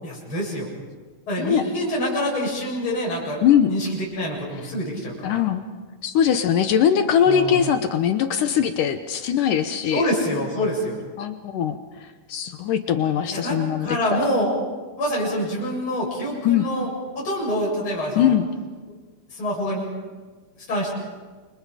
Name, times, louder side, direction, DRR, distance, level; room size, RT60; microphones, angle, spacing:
voice 1, 0.0-0.7 1.3-5.4 7.3-7.6 9.9-11.0 13.3-14.5 15.0-18.4 18.9-19.0 19.3-19.9 20.7-20.9, equal, 30° left, -4 dB, 8.2 m, -26 dB
voice 2, 5.2-5.6 6.0-10.1 11.2-11.8 12.3-14.2 16.5-16.6 18.2-18.5, left 9 dB, 70° left, 8 dB, 2.3 m, -21 dB
29.5 x 24.5 x 5.1 m, 1.3 s
omnidirectional pair, 4.3 m